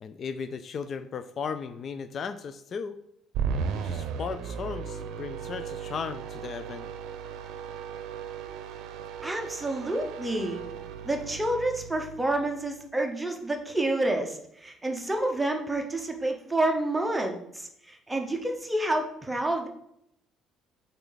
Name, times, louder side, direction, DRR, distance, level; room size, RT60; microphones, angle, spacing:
voice 1, 0.0-3.0 3.7-6.9, left 6 dB, 35° left, 11 dB, 0.3 m, -36 dB
sound 1, 3.3-12.7, right 6 dB, 65° right, 0.6 m, -36 dB
voice 2, 9.2-10.6 11.0-19.7, right 1 dB, 10° right, 3 dB, 0.8 m, -29 dB
8.0 x 4.1 x 4.0 m, 0.75 s
cardioid pair, 160°, 0 cm